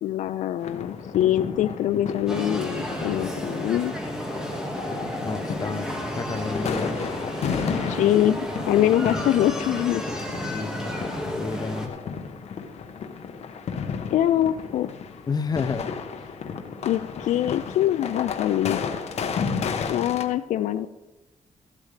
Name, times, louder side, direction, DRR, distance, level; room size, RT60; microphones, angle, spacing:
voice 1, 0.0-3.9 7.9-10.0 14.1-14.9 16.8-18.8 19.9-20.9, left 12 dB, 85° left, 11 dB, 0.4 m, -24 dB
sound 1, 0.6-20.2, left 6 dB, 60° left, 1.1 m, -33 dB
sound 2, 2.3-11.9, equal, 5° right, 1.8 m, -32 dB
voice 2, 5.2-7.0 10.5-10.9 11.4-11.9 15.3-15.9, left 5 dB, 30° left, 11 dB, 0.6 m, -30 dB
14.5 x 12.0 x 3.3 m, 1.1 s
wide cardioid pair, 145°, 12 cm